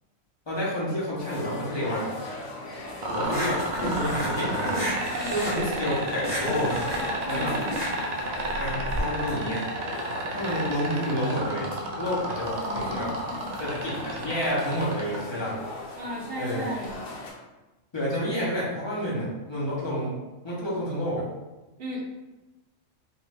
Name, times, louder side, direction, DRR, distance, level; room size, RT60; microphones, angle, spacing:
voice 1, 0.5-2.1 3.1-3.6 3.9-4.8 5.3-6.8 7.2-7.6 8.6-9.6 10.3-13.1 13.6-15.6 16.4-16.7 17.9-20.2 20.4-21.2, equal, 25° left, -8 dB, 0.9 m, -29 dB
sound 1, 1.2-17.3, left 2 dB, 70° left, 1.0 m, -39 dB
sound 2, 3.0-15.2 16.8-16.9, right 2 dB, 85° right, 0.3 m, -31 dB
sound 3, 3.2-9.0, equal, 45° left, 1.1 m, -32 dB
voice 2, 7.3-7.7 12.6-13.6 16.0-16.9 21.8-22.0, left 1 dB, 55° right, -3 dB, 0.8 m, -36 dB
2.5 x 2.5 x 3.3 m, 1.1 s
omnidirectional pair, 1.3 m